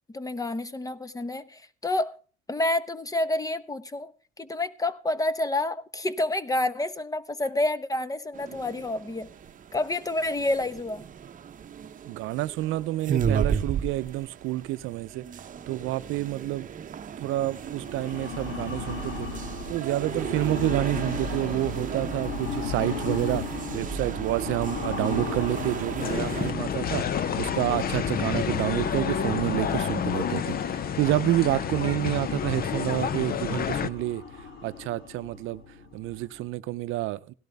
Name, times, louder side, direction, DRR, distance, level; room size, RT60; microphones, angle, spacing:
voice 1, 0.1-2.2 2.5-4.1 4.4-9.3 9.7-11.1, left 2 dB, 15° left, 1.0 m, -28 dB
sound 1, 8.3-26.5, right 8 dB, 40° right, 0.9 m, -34 dB
voice 2, 12.0-15.3 15.7-16.7 17.2-19.3 19.7-23.4 23.7-34.2 34.6-35.6 35.9-37.3, right 16 dB, 75° right, 0.6 m, -29 dB
sound 2, 17.7-36.4, left 4 dB, 70° left, 3.3 m, -36 dB
sound 3, 26.0-33.9, left 8 dB, 45° left, 0.8 m, -29 dB
17.0 x 12.0 x 3.4 m
cardioid pair, 95°, 21 cm